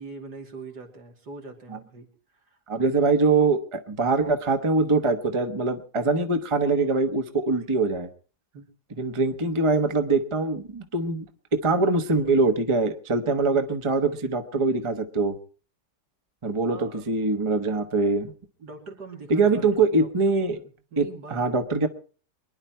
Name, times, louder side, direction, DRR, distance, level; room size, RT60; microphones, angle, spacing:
voice 1, 0.0-3.1 8.5-8.7 16.7-17.1 18.6-21.4, right 3 dB, 75° right, 2 dB, 3.2 m, -43 dB
voice 2, 2.7-8.1 9.0-11.3 11.6-15.4 16.4-18.3 19.3-20.6 21.0-21.9, right 3 dB, 20° right, 7 dB, 1.0 m, -23 dB
24.5 x 10.5 x 4.4 m, 0.39 s
omnidirectional pair, 1.8 m